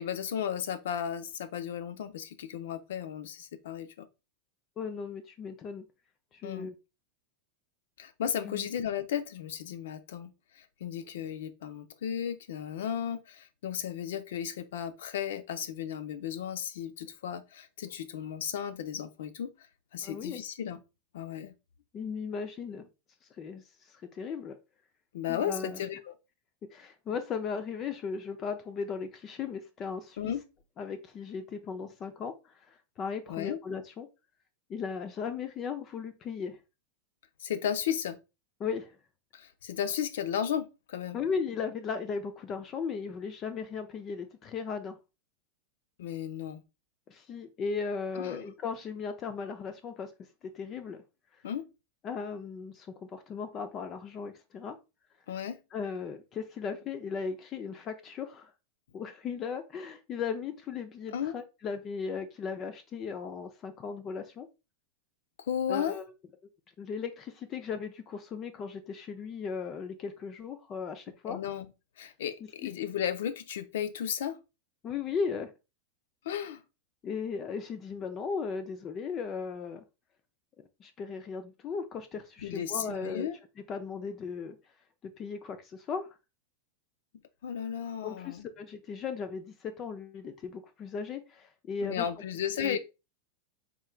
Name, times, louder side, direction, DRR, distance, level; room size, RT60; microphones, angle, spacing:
voice 1, 0.0-4.1 6.4-6.7 8.0-19.5 19.9-20.8 21.1-21.5 25.1-26.1 30.2-30.4 33.3-33.6 37.4-38.2 39.3-41.2 46.0-46.6 48.2-48.4 51.4-51.6 55.3-55.6 61.1-61.3 65.5-66.0 71.3-71.7 72.0-74.4 76.2-76.6 82.4-83.4 87.4-88.5 91.8-92.8, left 9 dB, 80° left, 0.6 m, -34 dB
voice 2, 4.8-5.9 6.3-6.8 8.4-8.7 20.0-20.4 21.9-22.9 23.4-24.6 25.3-25.8 26.7-30.3 30.8-34.1 34.7-36.6 38.6-38.9 41.1-45.0 47.1-50.1 50.4-51.0 52.0-54.8 55.7-58.5 58.9-64.5 65.7-66.0 66.8-71.4 72.6-72.7 74.8-75.5 77.0-79.8 80.8-83.3 83.7-84.6 85.0-86.1 88.0-92.1 92.5-92.8, left 5 dB, 25° left, 0.4 m, -37 dB
3.7 x 2.2 x 4.3 m
supercardioid pair, 165°, 0 cm